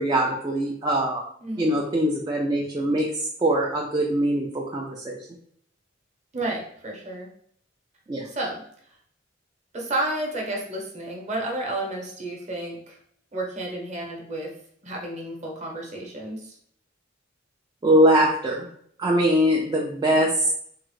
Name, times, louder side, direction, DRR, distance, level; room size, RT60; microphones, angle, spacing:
voice 1, 0.0-1.2 1.6-5.2 8.1-8.3 17.8-18.7 19.0-20.5, right 1 dB, 20° right, -2 dB, 0.3 m, -22 dB
voice 2, 1.4-1.8 6.3-7.3 8.2-8.6 9.7-13.0 13.3-14.5 14.8-16.5, right 1 dB, 35° right, -1 dB, 0.8 m, -31 dB
3.5 x 2.0 x 3.1 m, 0.64 s
head